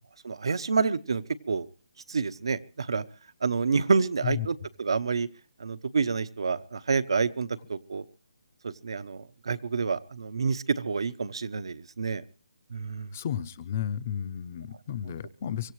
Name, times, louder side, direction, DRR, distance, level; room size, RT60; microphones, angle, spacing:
voice 1, 0.2-1.7 2.1-3.0 3.4-5.3 5.6-8.0 8.6-12.2 12.7-13.1, right 5 dB, 60° right, 13 dB, 1.0 m, -28 dB
voice 2, 13.1-15.7, left 9 dB, 25° left, 15 dB, 0.7 m, -33 dB
24.5 x 16.0 x 3.2 m, 0.37 s
hypercardioid pair, 175°, 3 cm